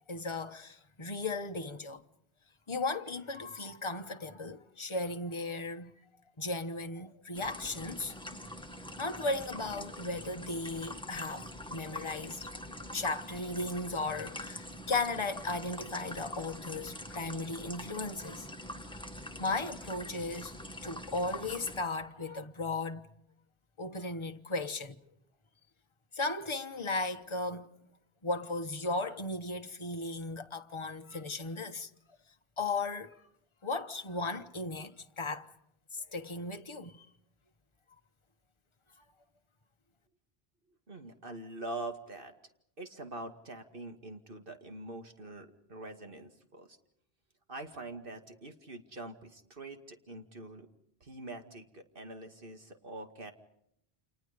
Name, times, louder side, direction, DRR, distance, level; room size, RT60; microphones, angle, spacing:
voice 1, 0.1-2.0 2.7-5.9 6.4-8.2 9.0-12.5 12.9-18.5 18.9-19.0 19.4-20.5 20.8-23.1 23.8-24.9 26.1-27.7 28.2-31.9 32.6-33.1 33.6-35.5 35.9-37.1, left 3 dB, 30° left, 1.2 m, -36 dB
sound 1, 7.3-21.8, left 1 dB, 5° left, 1.8 m, -44 dB
voice 2, 40.9-42.3 42.8-46.8 47.5-50.7 51.0-53.3, right 2 dB, 60° right, 2.4 m, -44 dB
30.0 x 28.0 x 5.2 m
omnidirectional pair, 1.0 m